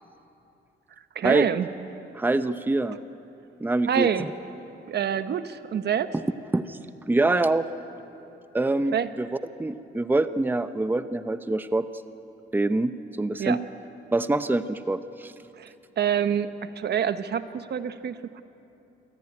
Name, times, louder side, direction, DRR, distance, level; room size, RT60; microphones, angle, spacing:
voice 1, 1.1-1.7 3.9-4.3 4.9-6.1 8.9-9.1 13.4-13.6 15.6-18.4, right 8 dB, 55° right, 11 dB, 1.0 m, -27 dB
voice 2, 2.1-3.0 3.6-4.3 6.5-6.8 7.1-7.7 8.5-9.3 9.6-11.9 12.5-13.6 14.1-15.3, right 2 dB, 10° right, 11 dB, 0.8 m, -25 dB
26.5 x 15.5 x 9.7 m, 2.9 s
cardioid pair, 90°, 20 cm